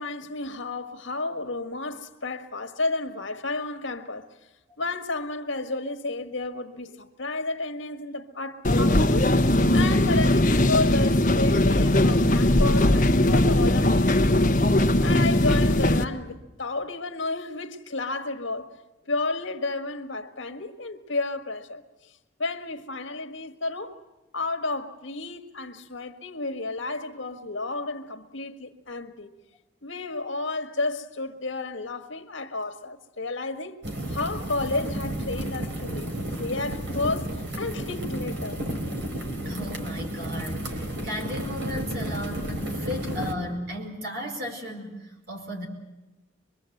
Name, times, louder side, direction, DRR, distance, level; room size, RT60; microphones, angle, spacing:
voice 1, 0.0-4.3 4.8-9.3 9.7-14.5 15.0-18.7 19.1-22.1 22.4-24.0 24.3-29.4 29.8-38.6, left 3 dB, 85° left, 1.7 m, -32 dB
sound 1, 8.6-16.0, left 1 dB, 40° left, 1.2 m, -20 dB
sound 2, 33.8-43.3, right 1 dB, 70° right, 3.6 m, -32 dB
voice 2, 39.4-45.7, left 1 dB, 55° right, 4.9 m, -35 dB
25.0 x 22.5 x 7.9 m
head